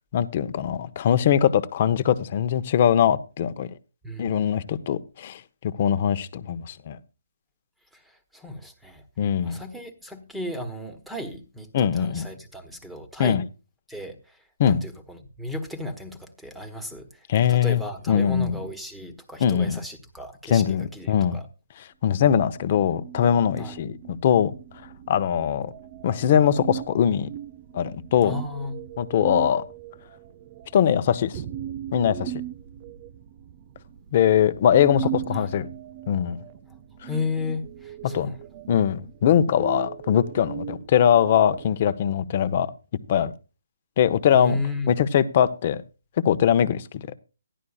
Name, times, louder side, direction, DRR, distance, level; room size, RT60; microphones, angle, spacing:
voice 1, 0.1-3.7 4.2-7.0 9.2-9.6 11.7-12.3 13.2-13.4 14.6-14.8 17.3-17.8 18.1-18.6 19.4-19.8 20.5-21.4 22.0-24.5 25.1-25.7 26.0-27.3 27.7-28.4 29.0-29.6 30.7-31.4 31.9-32.3 34.1-35.7 36.1-36.4 38.1-38.3 38.7-42.7 43.1-43.3 44.0-44.6 44.9-45.8 46.2-47.0, left 9 dB, 35° left, 0.8 m, -21 dB
voice 2, 4.0-4.6 7.9-9.0 9.4-13.4 13.9-20.6 20.9-21.5 23.6-23.8 28.2-28.8 35.3-35.5 37.1-38.4 44.3-44.9, left 2 dB, ahead, 1.2 m, -34 dB
sound 1, 22.6-41.7, right 12 dB, 30° right, 0.6 m, -38 dB
15.5 x 11.0 x 2.4 m
hypercardioid pair, 160°, 0 cm